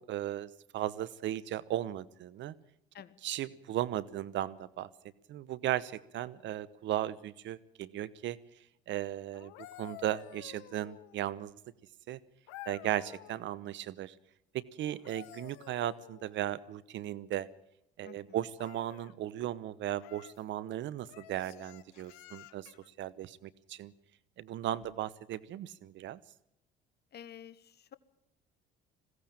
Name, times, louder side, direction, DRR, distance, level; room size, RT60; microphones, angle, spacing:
voice 1, 0.1-2.5 3.2-4.9 5.3-8.4 8.9-9.5 9.8-11.6 12.1-12.2 12.6-14.1 14.5-17.5 18.0-23.9 24.4-26.2, right 12 dB, 60° right, 19 dB, 1.0 m, -36 dB
sound 1, 9.3-11.3 12.5-13.4 14.8-16.5 18.5-19.2 20.0-20.4 21.1-22.9 24.7-24.9, left 16 dB, 80° left, 1.0 m, -51 dB
voice 2, 18.0-18.4 24.7-25.0 27.1-27.9, left 9 dB, 50° left, 16 dB, 1.4 m, -51 dB
21.0 x 16.5 x 8.8 m, 0.81 s
hypercardioid pair, 65°, 21 cm